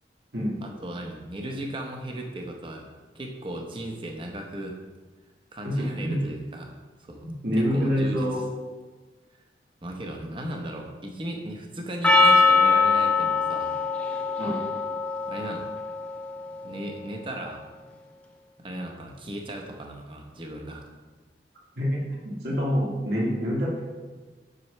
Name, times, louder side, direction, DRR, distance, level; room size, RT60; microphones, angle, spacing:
voice 1, 0.6-2.9 3.1-4.8 5.5-6.7 7.0-7.3 7.6-8.5 9.8-13.7 15.3-15.7 16.6-17.6 18.6-20.8, right 1 dB, 30° right, 2 dB, 0.8 m, -36 dB
voice 2, 5.6-6.2 7.2-8.4 14.4-14.6 21.8-23.8, equal, 65° right, -5 dB, 2.1 m, -26 dB
Percussion, 12.0-16.6, left 4 dB, 5° left, 0.4 m, -22 dB
7.6 x 6.2 x 3.3 m, 1.3 s
head